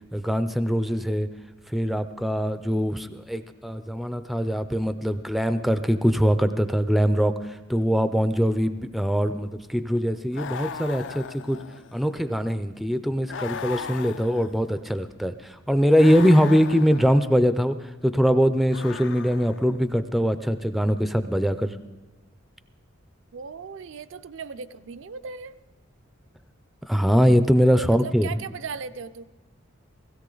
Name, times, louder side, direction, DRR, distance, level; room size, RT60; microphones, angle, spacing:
voice 1, 0.1-1.3 1.7-11.6 11.9-21.8 26.9-28.3, equal, ahead, 11 dB, 0.4 m, -22 dB
sound 1, 10.3-12.1 13.3-14.8 15.9-17.3 18.7-19.8, left 6 dB, 65° left, 0.4 m, -37 dB
voice 2, 23.3-25.5 27.8-29.2, right 5 dB, 70° right, 11 dB, 0.5 m, -37 dB
16.5 x 16.0 x 3.9 m, 1.3 s
head